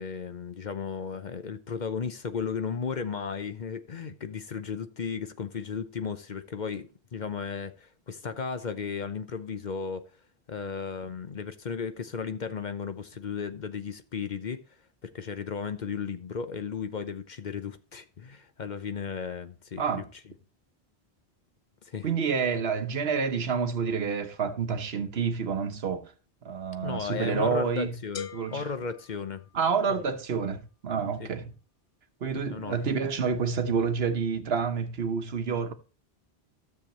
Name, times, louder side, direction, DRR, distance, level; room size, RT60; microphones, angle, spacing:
voice 1, 0.0-10.1 10.5-14.6 15.0-20.0 21.8-22.1 26.8-29.4 29.9-30.0 31.2-31.3 32.5-32.8, left 6 dB, 50° left, 0.8 m, -35 dB
voice 2, 22.0-26.1 26.4-27.9 28.3-28.6 29.5-31.5 32.2-35.7, right 6 dB, 70° right, 1.2 m, -28 dB
sound 1, 28.2-30.0, left 7 dB, 75° left, 1.1 m, -43 dB
13.0 x 7.0 x 3.0 m
omnidirectional pair, 1.1 m